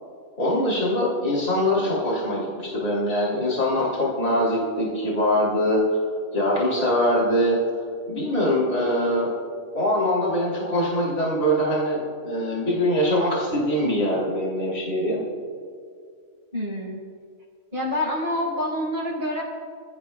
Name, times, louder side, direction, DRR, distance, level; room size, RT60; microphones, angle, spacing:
voice 1, 0.4-6.0 6.3-7.6 8.1-9.3 9.7-15.2, equal, 65° left, -5 dB, 3.3 m, -23 dB
voice 2, 16.5-17.0 17.7-19.4, left 1 dB, 40° right, -4 dB, 4.6 m, -27 dB
27.5 x 15.5 x 2.3 m, 2.2 s
omnidirectional pair, 1.4 m